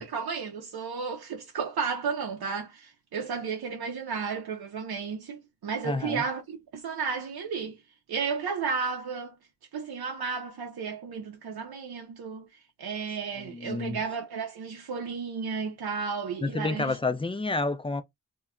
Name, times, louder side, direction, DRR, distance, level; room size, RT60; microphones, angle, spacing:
voice 1, 0.0-7.8 8.1-9.3 9.7-12.5 12.8-17.0, right 5 dB, 85° right, 0.6 m, -33 dB
voice 2, 5.8-6.2 13.4-14.0 16.4-18.0, left 3 dB, 15° left, 0.4 m, -29 dB
2.2 x 2.1 x 3.5 m
wide cardioid pair, 65°, 37 cm